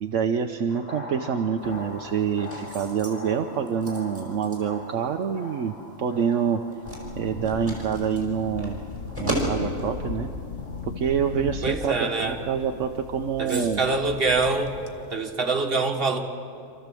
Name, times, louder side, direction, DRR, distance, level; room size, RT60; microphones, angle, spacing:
voice 1, 0.0-6.6 7.2-8.8 9.2-10.3 11.0-13.9, right 7 dB, 75° right, 4 dB, 1.1 m, -26 dB
sound 1, 0.7-10.9, left 1 dB, 35° left, 2.0 m, -43 dB
sound 2, 1.6-15.3, right 1 dB, 10° right, 4.9 m, -39 dB
sound 3, 6.8-14.9, left 5 dB, 65° left, 1.4 m, -37 dB
voice 2, 11.6-12.4 13.4-14.8 15.1-16.2, right 3 dB, 50° right, 2 dB, 1.8 m, -25 dB
27.0 x 14.0 x 7.6 m, 2.6 s
omnidirectional pair, 1.3 m